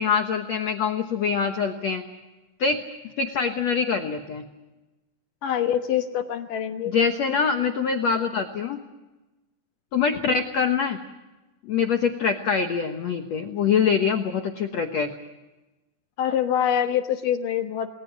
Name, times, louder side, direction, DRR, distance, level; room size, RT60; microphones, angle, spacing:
voice 1, 0.0-2.0 2.6-2.8 3.2-4.4 6.8-8.8 9.9-11.0 11.6-15.1, left 6 dB, 85° left, 6 dB, 1.5 m, -24 dB
voice 2, 5.4-6.9 7.3-7.4 16.2-17.9, left 9 dB, 65° left, 7 dB, 2.3 m, -25 dB
29.5 x 21.0 x 6.0 m, 1.1 s
omnidirectional pair, 5.0 m